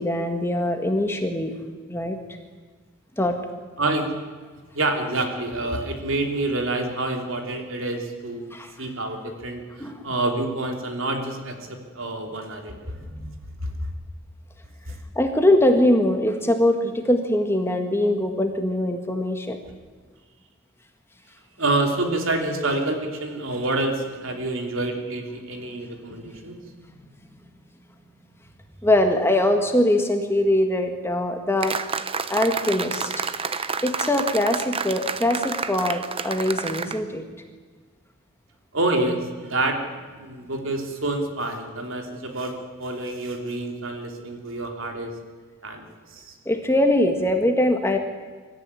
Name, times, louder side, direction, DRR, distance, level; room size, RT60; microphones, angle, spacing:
voice 1, 0.0-1.5 1.9-2.2 3.2-3.4 8.5-8.7 9.8-10.0 13.0-13.3 15.1-19.6 28.8-31.8 32.3-33.1 33.8-37.2 46.4-48.0, left 1 dB, 10° left, 5 dB, 1.7 m, -22 dB
voice 2, 3.8-4.1 4.7-8.4 8.8-13.0 13.6-13.7 14.9-15.0 21.6-26.6 38.7-39.9 40.2-42.5 42.8-45.1 45.6-46.3, right 2 dB, 65° right, 3 dB, 3.3 m, -27 dB
sound 1, 31.6-37.0, right 5 dB, 25° right, 0.8 m, -29 dB
24.0 x 14.0 x 9.8 m, 1.4 s
head